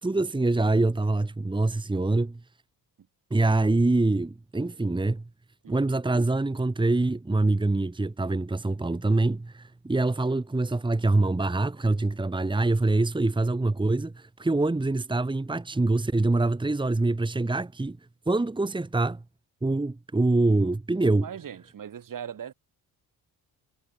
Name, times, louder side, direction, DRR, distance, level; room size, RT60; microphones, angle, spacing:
voice 1, 0.0-2.4 3.3-5.2 5.7-18.0 18.3-19.2 19.6-21.3, right 2 dB, 10° right, 1.8 m, -25 dB
voice 2, 21.2-22.5, right 8 dB, 55° right, 5.7 m, -39 dB
cardioid pair, 115°, 38 cm